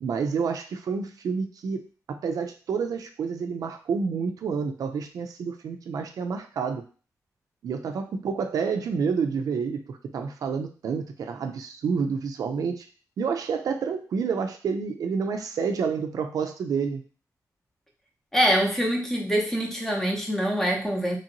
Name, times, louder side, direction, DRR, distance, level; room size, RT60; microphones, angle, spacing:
voice 1, 0.0-6.8 7.6-12.9 13.2-17.0, right 5 dB, 70° right, 6 dB, 0.4 m, -29 dB
voice 2, 18.3-21.2, equal, 5° left, 0 dB, 0.6 m, -24 dB
3.0 x 2.6 x 2.8 m, 0.38 s
wide cardioid pair, 145°, 6 cm